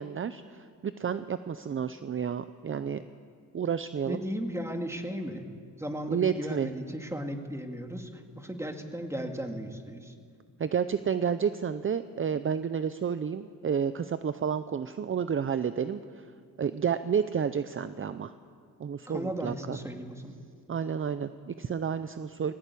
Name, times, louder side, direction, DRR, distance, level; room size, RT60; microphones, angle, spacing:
voice 1, 0.0-3.0 3.5-4.2 6.1-6.7 10.6-16.3 16.6-18.3 18.8-19.8 20.7-22.5, right 7 dB, 40° right, 12 dB, 0.6 m, -30 dB
voice 2, 4.1-5.5 5.8-10.1 19.1-20.3, equal, 10° right, 4 dB, 2.2 m, -36 dB
19.5 x 17.5 x 8.5 m, 2.1 s
cardioid pair, 85°, 33 cm